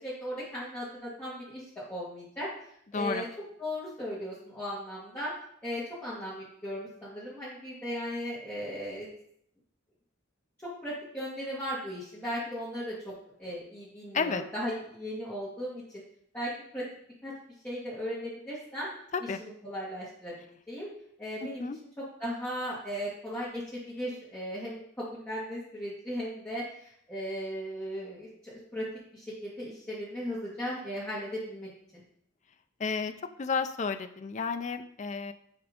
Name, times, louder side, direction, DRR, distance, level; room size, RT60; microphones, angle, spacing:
voice 1, 0.0-3.3 3.6-5.3 5.6-9.1 10.6-13.1 13.4-16.0 16.3-16.9 17.2-17.3 17.6-18.9 19.2-20.3 20.7-20.9 21.2-21.7 22.2-28.9 29.1-32.0, equal, 10° left, -11 dB, 2.1 m, -37 dB
voice 2, 2.9-3.3 14.1-14.4 19.1-19.4 21.4-21.8 32.8-35.3, left 5 dB, 35° left, 9 dB, 0.4 m, -32 dB
10.0 x 3.6 x 5.1 m, 0.67 s
head